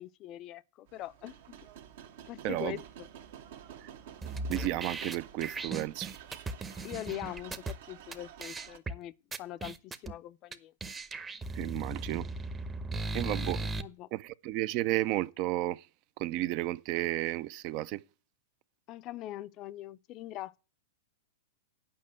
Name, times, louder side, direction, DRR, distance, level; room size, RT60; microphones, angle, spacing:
voice 1, 0.0-1.4 2.3-3.1 6.8-9.1 9.4-10.7 13.2-13.4 13.8-14.1 18.9-20.6, left 14 dB, 40° left, 0.5 m, -42 dB
sound 1, 0.9-8.8, right 9 dB, 65° right, 1.3 m, -50 dB
voice 2, 2.4-2.8 4.5-6.1 11.6-12.3 13.1-13.7 14.1-15.8 16.2-18.0, right 16 dB, 45° right, 0.4 m, -32 dB
sound 2, 4.2-7.7 8.1-8.2 8.4-8.9 9.3-10.1 10.5-10.6 10.8-13.8, right 2 dB, 15° right, 0.8 m, -37 dB
8.7 x 5.5 x 7.5 m
hypercardioid pair, 115°, 0 cm